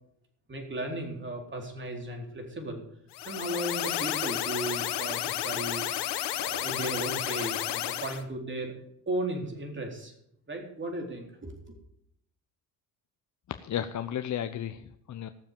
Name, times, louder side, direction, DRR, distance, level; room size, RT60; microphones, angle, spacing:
voice 1, 0.5-2.8 3.3-5.8 6.4-8.7 9.1-10.1 10.5-11.8, right 1 dB, 30° right, 3 dB, 4.0 m, -35 dB
sound 1, 3.1-8.2, left 13 dB, 75° left, 1.3 m, -32 dB
voice 2, 13.5-15.3, left 10 dB, 45° left, 9 dB, 0.8 m, -34 dB
16.0 x 7.0 x 7.4 m, 0.74 s
supercardioid pair, 80°, 40 cm